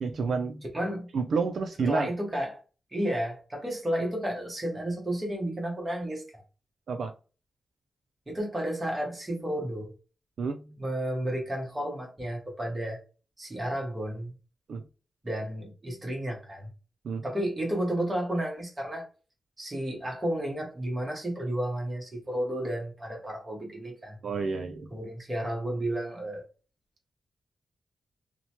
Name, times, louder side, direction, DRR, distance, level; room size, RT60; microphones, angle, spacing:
voice 1, 0.0-0.6 1.1-2.1 6.9-7.1 10.4-10.8 14.7-14.9 17.0-17.3 24.2-25.0, right 5 dB, 65° right, 0.3 m, -30 dB
voice 2, 0.7-1.1 1.9-2.6 2.9-6.2 8.3-9.9 10.8-13.0 13.4-14.3 15.2-16.7 17.2-19.1 19.6-24.2 24.9-26.4, right 1 dB, 15° right, 1.0 m, -32 dB
2.9 x 2.1 x 2.8 m
wide cardioid pair, 170°, 0 cm